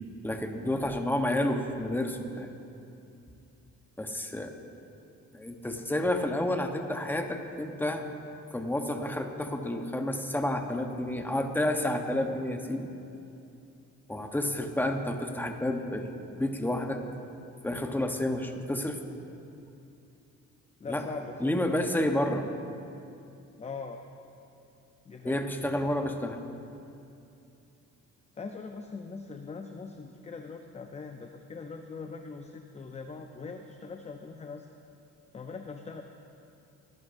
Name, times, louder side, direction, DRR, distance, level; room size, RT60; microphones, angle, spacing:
voice 1, 0.2-2.5 4.0-4.5 5.3-8.1 8.5-12.9 14.1-17.0 17.6-19.0 20.9-21.0 21.4-22.5 25.2-26.4, left 1 dB, 5° left, 4 dB, 1.0 m, -30 dB
voice 2, 20.8-21.6 23.6-24.0 25.0-25.5 28.4-34.7 35.3-36.0, left 4 dB, 20° left, 5 dB, 0.6 m, -41 dB
19.5 x 11.0 x 2.6 m, 2.7 s
cardioid pair, 90°, 30 cm